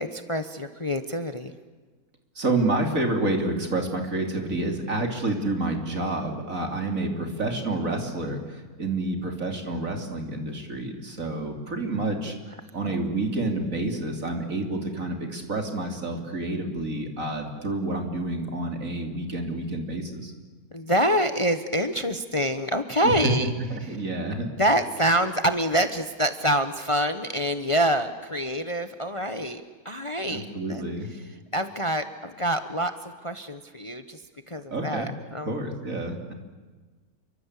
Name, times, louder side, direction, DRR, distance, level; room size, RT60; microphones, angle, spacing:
voice 1, 0.0-1.6 20.7-23.5 23.8-23.9 24.4-30.4 30.7-30.8 31.1-35.6, equal, 25° left, 9 dB, 1.0 m, -26 dB
voice 2, 2.4-12.3 12.7-20.3 23.0-23.1 23.7-24.5 30.3-31.1 34.7-35.1 35.4-36.3, right 2 dB, 60° right, 4 dB, 3.7 m, -29 dB
29.0 x 24.0 x 8.4 m, 1.4 s
omnidirectional pair, 1.6 m